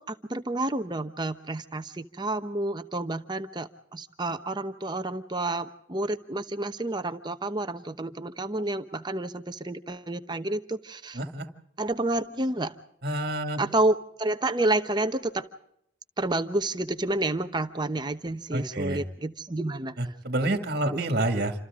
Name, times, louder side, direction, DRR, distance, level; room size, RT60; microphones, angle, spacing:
voice 1, 0.0-11.2 11.8-12.8 13.6-15.5 16.2-20.1 20.9-21.1, right 2 dB, 20° right, 9 dB, 0.9 m, -30 dB
voice 2, 11.1-11.5 13.0-13.6 18.5-19.0 20.0-21.5, right 1 dB, 50° right, 6 dB, 2.3 m, -28 dB
28.0 x 27.0 x 3.7 m, 0.73 s
head